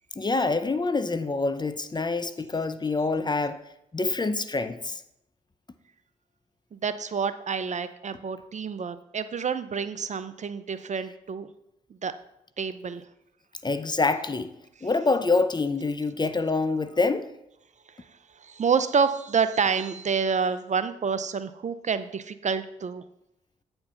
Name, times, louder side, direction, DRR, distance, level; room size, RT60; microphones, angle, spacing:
voice 1, 0.2-3.6 3.9-5.0 13.6-14.5 14.8-17.3, left 3 dB, 25° left, 0.7 m, -26 dB
voice 2, 6.7-11.5 12.0-12.1 12.6-13.0 18.0-18.1 18.4-23.0, right 6 dB, 40° right, 0.6 m, -28 dB
8.6 x 4.5 x 5.5 m
hypercardioid pair, 45°, 18 cm